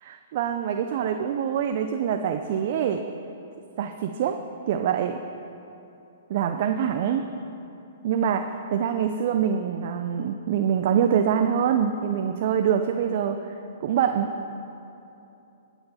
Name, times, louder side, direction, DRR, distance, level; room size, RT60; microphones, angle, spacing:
voice 1, 0.1-3.0 3.8-4.4 4.7-5.2 6.3-7.3 8.0-13.5 13.8-14.3, right 8 dB, 55° right, 6 dB, 0.6 m, -25 dB
12.5 x 9.0 x 5.6 m, 2.8 s
hypercardioid pair, 140°, 0 cm